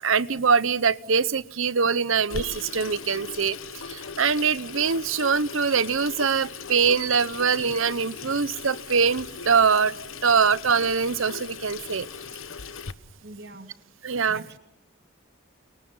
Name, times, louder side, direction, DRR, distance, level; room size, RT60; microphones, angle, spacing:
voice 1, 0.0-3.6 3.9-9.9 10.2-12.1 14.0-14.4, right 5 dB, 75° right, 18 dB, 0.9 m, -23 dB
Water tap faucet / Sink (filling or washing), 2.3-12.9, left 5 dB, 80° left, 1.1 m, -39 dB
voice 2, 13.2-13.7 14.3-14.6, right 3 dB, 50° right, 7 dB, 2.9 m, -43 dB
30.0 x 28.5 x 5.6 m, 0.86 s
head